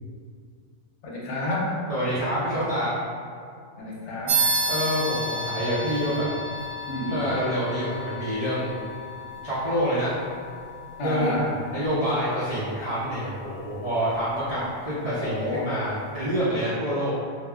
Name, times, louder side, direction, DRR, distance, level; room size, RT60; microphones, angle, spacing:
voice 1, 1.0-1.7 3.8-4.4 6.9-7.1 11.0-11.5 14.5-14.6 15.0-15.7, left 1 dB, 70° left, -5 dB, 0.9 m, -29 dB
voice 2, 1.9-2.9 4.6-6.3 7.0-8.8 9.4-10.2 11.0-11.4 11.7-17.1, equal, 50° right, -12 dB, 0.4 m, -27 dB
sound 1, 4.3-14.2, right 1 dB, 80° right, 1.0 m, -32 dB
2.3 x 2.0 x 3.5 m, 2.3 s
omnidirectional pair, 1.3 m